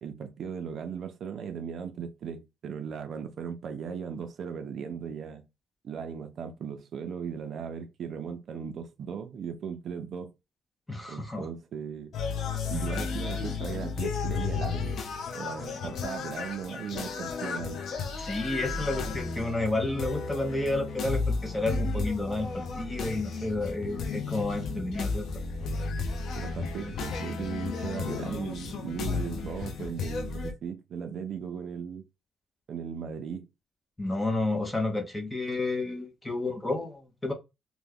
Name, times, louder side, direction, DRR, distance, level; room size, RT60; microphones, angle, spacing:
voice 1, 0.0-5.4 5.8-10.3 11.1-12.1 12.7-15.0 15.3-17.8 26.3-32.0 32.7-33.5, right 7 dB, 50° right, 0.5 m, -37 dB
voice 2, 10.9-11.5 12.7-12.9 18.2-25.3 34.0-37.3, left 2 dB, 10° left, 0.6 m, -31 dB
sound 1, 12.1-30.5, left 4 dB, 60° left, 0.5 m, -33 dB
2.9 x 2.1 x 3.6 m
cardioid pair, 175°, 0 cm